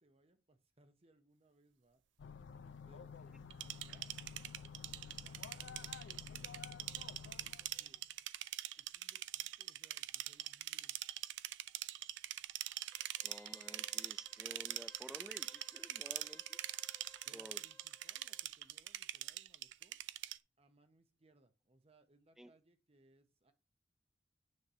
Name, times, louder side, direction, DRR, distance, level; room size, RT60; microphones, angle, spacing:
voice 1, 0.0-2.0 2.8-4.1 5.0-5.9 6.2-6.7 7.0-8.0 8.8-11.0 17.2-20.0 20.6-23.5, right 2 dB, 35° right, 0.9 m, -70 dB
sound 1, 2.2-8.1, left 6 dB, 75° left, 0.4 m, -52 dB
sound 2, 3.5-20.4, right 14 dB, 75° right, 0.4 m, -43 dB
Wind instrument woodwind instrument, 12.9-18.5 18.8-18.9, left 3 dB, 15° left, 0.9 m, -64 dB
voice 2, 13.2-16.6 17.3-17.6 22.4-22.5, equal, 5° right, 0.3 m, -54 dB
9.5 x 3.3 x 4.3 m
head